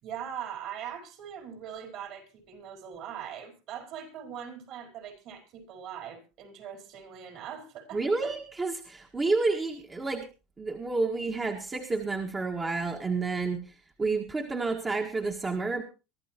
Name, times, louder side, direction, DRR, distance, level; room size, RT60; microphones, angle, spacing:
voice 1, 0.0-8.3, right 9 dB, 55° right, 4 dB, 4.9 m, -41 dB
voice 2, 7.9-10.3 10.6-13.7 14.0-15.8, right 3 dB, 20° right, 2 dB, 1.7 m, -30 dB
23.5 x 12.5 x 3.0 m, 0.31 s
supercardioid pair, 130°, 0 cm